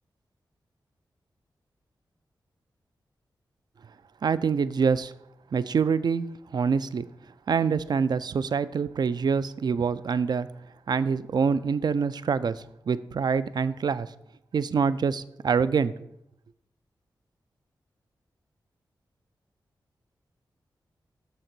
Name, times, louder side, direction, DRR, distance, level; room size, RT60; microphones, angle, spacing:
voice 1, 4.2-5.1 5.5-6.3 6.5-7.1 7.5-10.5 10.9-14.1 14.5-15.9, right 6 dB, 60° right, 15 dB, 0.4 m, -25 dB
6.3 x 3.9 x 6.0 m, 0.79 s
cardioid pair, 50°, 8 cm